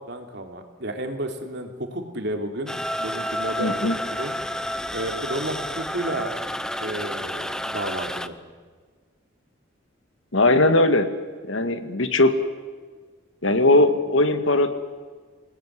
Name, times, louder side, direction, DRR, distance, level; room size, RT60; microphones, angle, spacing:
voice 1, 0.0-4.3 4.9-6.3 6.8-8.3, right 1 dB, 55° right, 4 dB, 3.2 m, -32 dB
sound 1, 2.7-8.3, equal, 5° left, 0.8 m, -30 dB
voice 2, 3.6-4.0 10.3-11.1 11.5-12.3 13.4-14.7, left 2 dB, 75° left, 9 dB, 2.1 m, -19 dB
27.5 x 19.0 x 9.5 m, 1.5 s
head